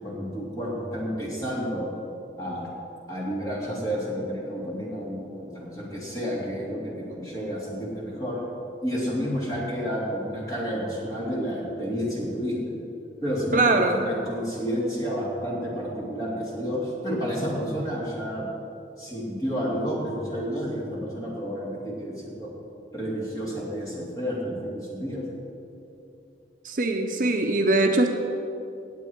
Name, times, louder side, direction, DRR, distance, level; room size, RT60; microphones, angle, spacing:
voice 1, 0.0-1.9 2.4-2.7 3.1-8.4 8.8-12.7 13.2-18.5 19.0-22.5 22.9-25.2, equal, 20° left, -5 dB, 2.8 m, -30 dB
voice 2, 13.5-14.0 26.6-28.1, right 2 dB, 45° right, 4 dB, 0.7 m, -22 dB
18.5 x 8.1 x 4.5 m, 2.8 s
head